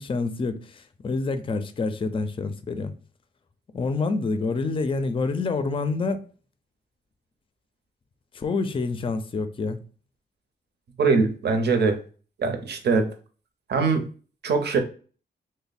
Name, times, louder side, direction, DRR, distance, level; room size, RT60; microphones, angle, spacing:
voice 1, 0.0-2.9 3.7-6.2 8.3-9.8, left 3 dB, 30° left, 0.4 m, -27 dB
voice 2, 11.0-12.0 12.4-13.1 13.7-14.0 14.4-14.8, right 4 dB, 65° right, 0.7 m, -22 dB
3.0 x 2.1 x 4.1 m
wide cardioid pair, 100°, 18 cm